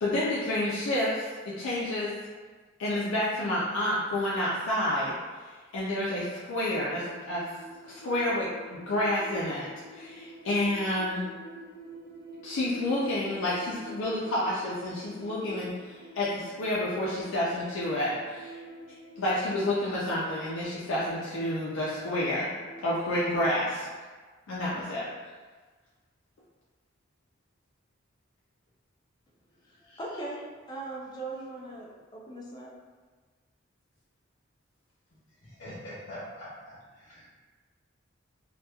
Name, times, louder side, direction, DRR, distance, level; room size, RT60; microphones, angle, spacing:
voice 1, 0.0-2.1 2.8-5.1 5.7-7.4 7.8-9.7 9.9-11.3 12.4-18.6 19.2-22.5 22.8-23.9 24.5-25.1 29.9-30.0, left 1 dB, 85° left, -8 dB, 0.4 m, -29 dB
sound 1, 7.0-22.8, equal, 25° right, 0.8 m, -48 dB
voice 2, 29.6-31.9 32.1-32.7, right 2 dB, 20° left, -3 dB, 0.3 m, -39 dB
voice 3, 35.4-37.3, equal, 60° left, -12 dB, 1.0 m, -43 dB
2.8 x 2.2 x 2.2 m, 1.4 s
head